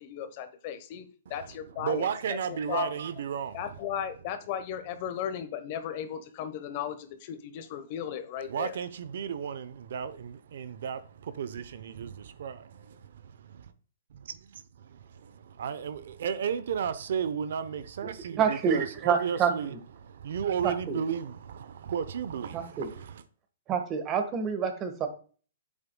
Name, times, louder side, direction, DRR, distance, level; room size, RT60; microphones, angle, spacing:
voice 1, 0.0-2.9 3.5-8.8, left 9 dB, 40° left, 1.1 m, -36 dB
voice 2, 1.3-3.6 8.5-13.7 14.8-23.2, right 7 dB, 70° right, 0.7 m, -34 dB
voice 3, 18.4-19.8 20.6-21.0 22.5-22.9 23.7-25.1, right 6 dB, 25° right, 1.5 m, -28 dB
8.8 x 7.3 x 2.3 m
hypercardioid pair, 145°, 0 cm